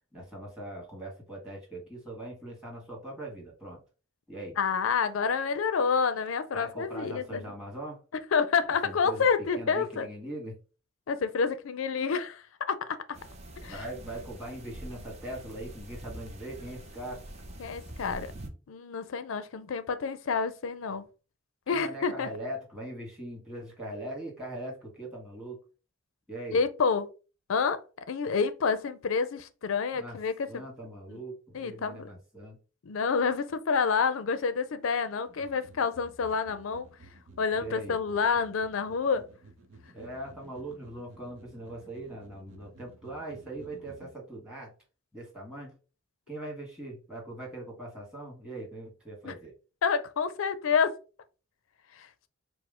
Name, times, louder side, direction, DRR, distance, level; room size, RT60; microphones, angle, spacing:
voice 1, 0.1-3.8 4.3-4.6 6.5-8.0 8.8-9.3 9.5-10.5 13.7-17.2 21.7-25.6 26.3-26.6 29.9-30.2 30.5-32.6 37.5-38.0 39.9-44.7 45.1-45.7 46.3-49.5, right 1 dB, 5° right, 1.5 m, -41 dB
voice 2, 4.6-7.4 8.3-10.1 11.1-13.0 13.6-13.8 17.6-18.3 18.7-21.0 21.7-22.3 26.5-27.1 27.5-27.8 28.1-30.5 31.1-31.2 31.5-32.1 32.9-36.9 37.4-39.2 49.2-49.3 49.8-51.0 52.0-52.1, left 5 dB, 80° left, 0.5 m, -28 dB
sound 1, 13.1-18.5, right 1 dB, 30° right, 0.6 m, -45 dB
sound 2, 35.3-44.1, right 2 dB, 70° right, 0.7 m, -54 dB
4.7 x 2.0 x 3.6 m
head